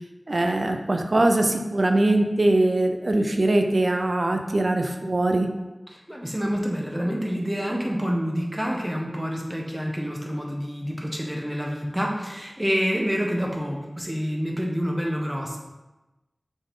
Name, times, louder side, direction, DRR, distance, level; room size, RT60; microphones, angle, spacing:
voice 1, 0.3-5.5, right 2 dB, 65° right, 4 dB, 0.6 m, -22 dB
voice 2, 5.9-15.6, equal, 10° right, -1 dB, 1.1 m, -28 dB
6.4 x 4.2 x 3.7 m, 1.1 s
wide cardioid pair, 50°, 0 cm